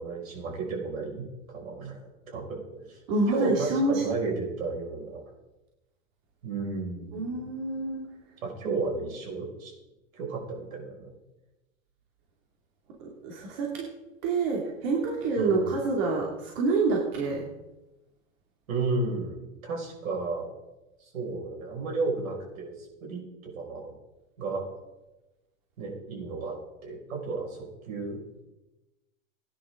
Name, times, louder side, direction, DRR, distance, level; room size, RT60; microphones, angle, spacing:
voice 1, 0.0-3.0 3.3-5.2 6.4-7.4 8.4-9.7 10.1-11.1 15.4-15.7 18.7-20.5 21.0-23.9 24.4-24.7 25.8-28.2, right 3 dB, 80° right, -1 dB, 5.7 m, -33 dB
voice 2, 3.1-4.0 7.1-8.0 13.0-13.9 14.2-17.5, right 3 dB, 45° right, -1 dB, 2.6 m, -27 dB
17.5 x 10.0 x 3.8 m, 1.0 s
supercardioid pair, 150°, 40 cm